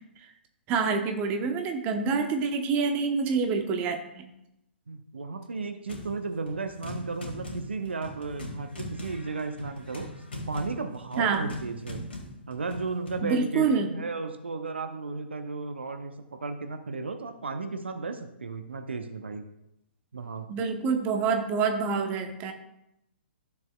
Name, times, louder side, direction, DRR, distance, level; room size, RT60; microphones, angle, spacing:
voice 1, 0.7-4.3 11.2-11.5 13.2-13.9 20.5-22.5, right 5 dB, 25° right, 5 dB, 0.9 m, -27 dB
voice 2, 4.9-10.1 10.5-12.0 12.5-19.4 20.1-20.5, right 4 dB, 70° right, 7 dB, 0.7 m, -34 dB
sound 1, 5.9-6.2 6.5-13.2, left 1 dB, 65° left, 2.1 m, -40 dB
13.0 x 6.9 x 2.3 m, 0.83 s
figure-of-eight pair, 120°, 6 cm